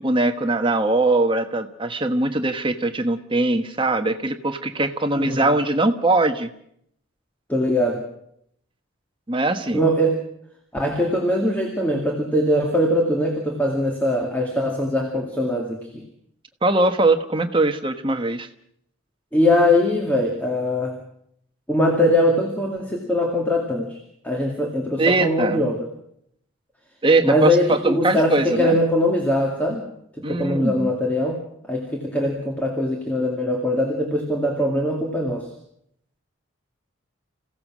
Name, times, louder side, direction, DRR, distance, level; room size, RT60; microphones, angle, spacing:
voice 1, 0.0-6.5 9.3-9.8 16.6-18.5 25.0-25.6 27.0-28.8 30.2-30.9, right 2 dB, 25° right, 7 dB, 1.3 m, -21 dB
voice 2, 5.1-5.6 7.5-8.1 9.7-10.2 10.7-16.1 19.3-21.0 21.7-24.0 24.2-25.9 27.2-29.9 30.1-35.5, left 1 dB, 10° left, 0 dB, 2.4 m, -22 dB
27.5 x 16.5 x 6.3 m, 0.72 s
head